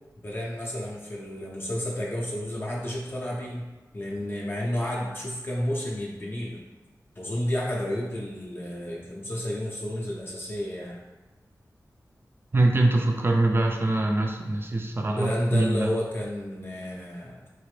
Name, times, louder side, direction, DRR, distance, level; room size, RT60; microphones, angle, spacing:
voice 1, 0.2-3.7 3.9-6.6 7.2-11.0 15.1-17.4, left 1 dB, 35° left, -4 dB, 0.5 m, -31 dB
voice 2, 12.5-15.9, right 2 dB, 35° right, 2 dB, 0.5 m, -23 dB
4.0 x 2.6 x 3.2 m, 1.2 s
wide cardioid pair, 95°, 7 cm